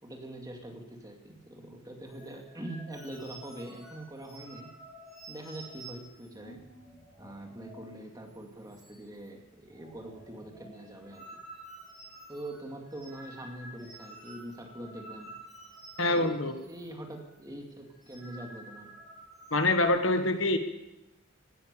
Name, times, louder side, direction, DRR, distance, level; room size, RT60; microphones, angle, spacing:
voice 1, 0.0-4.7 5.3-6.6 7.2-11.2 12.3-15.3 16.1-18.9, right 1 dB, 15° right, 2 dB, 2.3 m, -43 dB
sound 1, 2.1-8.0 8.3-8.4 8.7-9.3 9.6-16.9 17.2-17.4 17.9-19.8, right 1 dB, ahead, 4.3 m, -50 dB
voice 2, 16.0-16.6 19.5-20.6, left 2 dB, 65° left, 7 dB, 1.5 m, -25 dB
17.0 x 12.0 x 6.9 m, 0.93 s
head